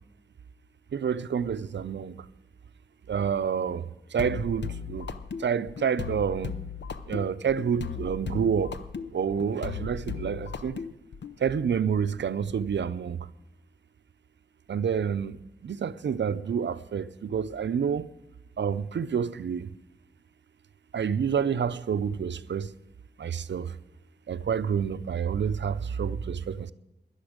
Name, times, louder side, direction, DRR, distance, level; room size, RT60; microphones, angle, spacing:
voice 1, 0.9-2.3 3.1-5.1 5.4-6.6 7.1-8.8 9.1-10.8 11.4-13.3 14.7-15.4 15.6-18.1 18.6-19.7 20.9-22.7 23.2-23.7 24.3-26.7, right 7 dB, 80° right, 0.5 m, -28 dB
sound 1, 4.2-11.4, left 6 dB, 75° left, 0.6 m, -36 dB
17.5 x 11.0 x 5.0 m
wide cardioid pair, 95°, 18 cm